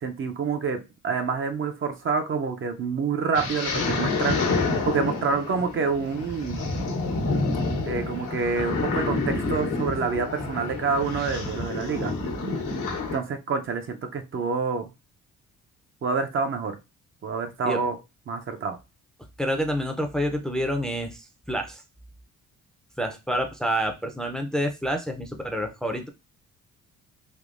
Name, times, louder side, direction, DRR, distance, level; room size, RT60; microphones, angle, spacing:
voice 1, 0.0-4.5 4.9-6.7 7.8-12.1 13.1-14.9 16.0-16.8 17.2-18.0 18.3-18.8, right 5 dB, 45° right, 6 dB, 0.6 m, -27 dB
sound 1, 3.3-13.2, left 3 dB, 90° left, 1.1 m, -28 dB
voice 2, 19.4-21.8 23.0-26.1, equal, ahead, 4 dB, 0.5 m, -28 dB
3.6 x 2.7 x 2.5 m, 0.25 s
cardioid pair, 90°, 30 cm